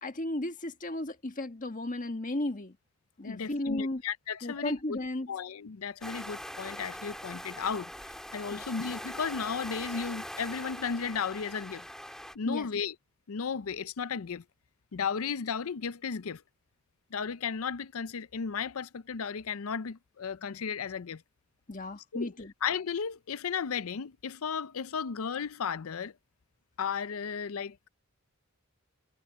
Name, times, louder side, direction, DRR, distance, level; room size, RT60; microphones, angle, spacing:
voice 1, 0.0-2.8 3.2-4.0 4.4-5.3 8.5-8.6 12.5-12.7 21.7-22.5, left 1 dB, 35° left, 1.5 m, -34 dB
voice 2, 3.2-5.0 5.3-7.9 8.3-11.8 12.3-12.9 13.3-14.4 14.9-16.4 17.1-21.2 22.1-22.3 22.6-26.1 26.8-27.9, left 6 dB, 75° left, 0.5 m, -34 dB
sound 1, 6.0-12.4, equal, ahead, 1.8 m, -42 dB
head